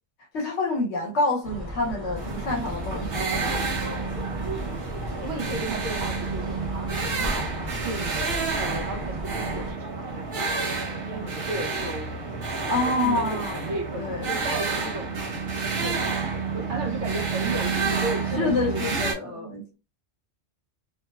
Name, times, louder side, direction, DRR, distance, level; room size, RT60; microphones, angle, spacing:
voice 1, 0.3-3.6 12.7-13.6 14.0-14.4 18.4-19.7, left 2 dB, 75° left, 1.1 m, -27 dB
sound 1, 1.4-9.7, right 1 dB, 35° right, 0.7 m, -35 dB
sound 2, 2.2-19.1, right 4 dB, 60° right, 1.0 m, -29 dB
voice 2, 5.2-10.7 11.0-12.1 12.5-15.4 15.7-16.0 16.5-18.8 19.2-19.6, right 2 dB, 85° right, 1.0 m, -34 dB
2.9 x 2.0 x 2.3 m
omnidirectional pair, 1.2 m